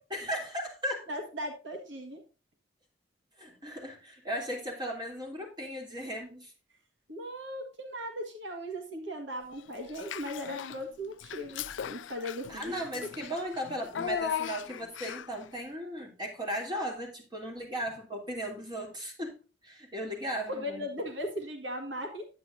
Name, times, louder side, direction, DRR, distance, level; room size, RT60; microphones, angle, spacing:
voice 1, 0.1-1.1 3.4-6.5 12.5-19.4 19.6-20.8, equal, 25° right, 0 dB, 3.1 m, -36 dB
voice 2, 1.1-2.2 7.1-13.1 20.5-22.2, equal, 75° right, 4 dB, 1.7 m, -38 dB
Child speech kid speaking / Bathtub (filling or washing), 9.9-10.8 11.2-15.4, left 8 dB, 80° left, 0.4 m, -38 dB
10.5 x 9.0 x 2.6 m, 0.34 s
head